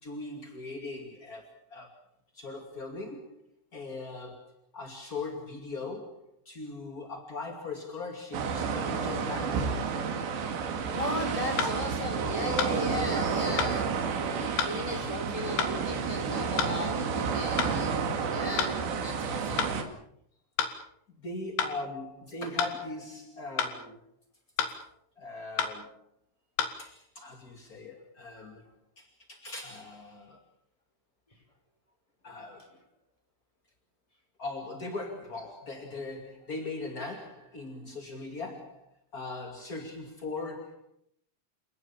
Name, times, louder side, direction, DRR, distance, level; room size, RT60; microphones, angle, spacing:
voice 1, 0.0-2.0 2.3-3.4 3.7-9.9 11.5-11.7 12.2-12.4 12.9-13.0 17.5-17.7 19.3-19.6 21.1-24.0 25.2-26.0 26.8-28.6 28.9-30.4 32.2-32.8 34.4-38.9 39.1-40.8, left 3 dB, 30° left, 4 dB, 1.6 m, -40 dB
sound 1, 8.3-19.8, right 6 dB, 65° right, 4.5 m, -31 dB
voice 2, 10.9-18.0 18.3-18.7 19.0-19.7, left 1 dB, 5° left, 3 dB, 5.8 m, -36 dB
sound 2, 11.6-11.8 12.6-12.8 13.6-13.8 14.6-14.8 15.6-15.8 16.6-16.8 17.6-17.8 18.6-18.8 19.6-19.8 20.6-20.8 21.6-21.7 22.6-22.8 23.6-23.8 24.6-24.8 25.6-25.7 26.6-26.7, left 8 dB, 75° left, 4.6 m, -29 dB
29.0 x 18.5 x 7.2 m, 0.72 s
omnidirectional pair, 5.6 m